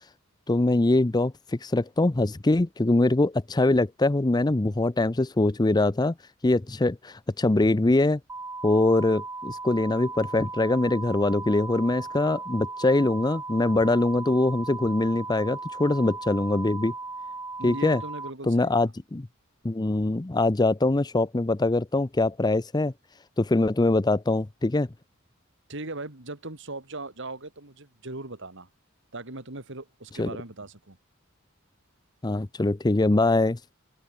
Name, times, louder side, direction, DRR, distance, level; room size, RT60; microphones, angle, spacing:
voice 1, 0.5-6.1 6.4-8.2 8.6-16.9 17.6-18.0 18.4-19.3 19.6-22.9 23.4-24.9 30.2-30.4 32.2-33.6, left 2 dB, 20° left, 0.5 m, -23 dB
sound 1, 8.3-18.3, right 3 dB, 15° right, 2.6 m, -37 dB
voice 2, 17.6-18.9 25.7-28.7 29.1-31.0, right 2 dB, 60° right, 3.2 m, -39 dB
open air
head